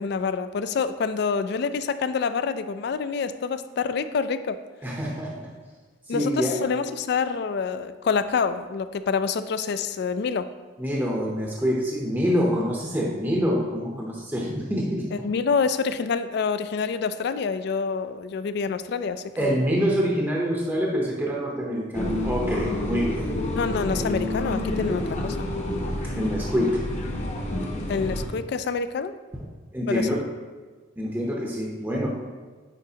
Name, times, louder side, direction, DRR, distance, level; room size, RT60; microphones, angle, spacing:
voice 1, 0.0-4.6 6.1-10.5 15.1-19.5 23.5-25.5 27.9-29.1 29.9-30.1, left 5 dB, 55° left, 13 dB, 0.3 m, -27 dB
voice 2, 4.8-5.5 6.1-6.6 10.8-15.1 19.4-23.3 26.1-26.8 27.6-27.7 29.7-30.2 31.0-32.1, equal, 10° right, -3 dB, 0.6 m, -26 dB
sound 1, 21.9-28.3, left 1 dB, 35° left, 0.7 m, -28 dB
9.0 x 4.6 x 2.8 m, 1.4 s
head